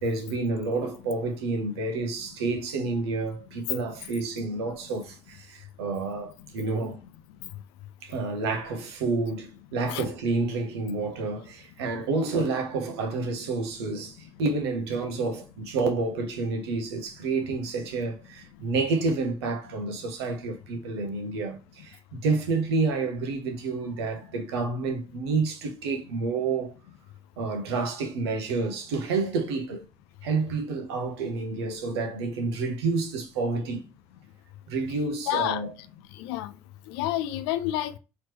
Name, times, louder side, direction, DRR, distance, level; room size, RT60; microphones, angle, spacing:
voice 1, 0.0-7.0 8.0-26.7 27.4-29.8 30.2-33.8 34.7-35.7, right 3 dB, 80° right, 0.7 m, -29 dB
voice 2, 35.3-35.6 36.2-36.5 36.9-38.0, left 13 dB, 75° left, 0.4 m, -28 dB
4.3 x 3.1 x 2.9 m
figure-of-eight pair, 40°, 13 cm